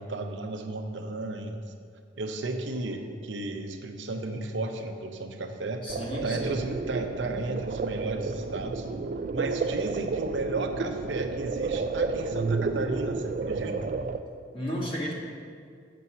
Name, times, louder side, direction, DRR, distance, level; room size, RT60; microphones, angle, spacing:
voice 1, 0.0-1.6 2.2-5.9 6.2-8.9 9.3-13.9, right 2 dB, 80° right, 5 dB, 0.7 m, -34 dB
voice 2, 5.8-6.6 14.5-15.1, equal, 30° left, -3 dB, 1.5 m, -33 dB
sound 1, 5.9-14.2, right 4 dB, 45° right, 0.3 m, -31 dB
7.5 x 6.9 x 5.6 m, 2.3 s
head